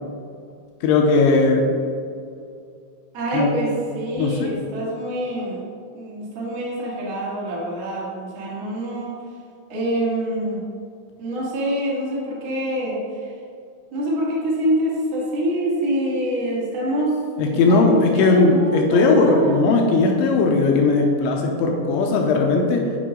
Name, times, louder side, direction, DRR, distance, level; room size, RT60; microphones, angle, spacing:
voice 1, 0.8-1.7 3.3-3.6 4.2-4.5 17.4-22.8, left 3 dB, 80° left, 1 dB, 2.8 m, -18 dB
voice 2, 3.1-9.2 9.7-10.6 11.2-13.3 13.9-17.2 17.5-19.6, right 1 dB, 75° right, -7 dB, 1.1 m, -25 dB
10.5 x 5.1 x 3.8 m, 2.3 s
omnidirectional pair, 5.9 m